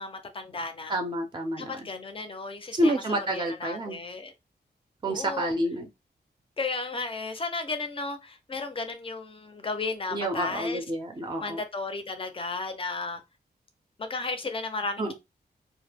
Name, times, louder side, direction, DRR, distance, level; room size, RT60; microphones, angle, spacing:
voice 1, 0.0-1.0 1.6-2.9 3.3-4.3 5.0-5.5 6.6-10.8 11.4-13.2 14.0-15.1, left 3 dB, 30° left, 0.5 m, -34 dB
voice 2, 0.9-1.9 2.7-4.0 5.0-5.9 10.1-11.6 15.0-15.1, right 1 dB, 25° right, 0.5 m, -29 dB
2.1 x 2.0 x 3.3 m
wide cardioid pair, 125°, 18 cm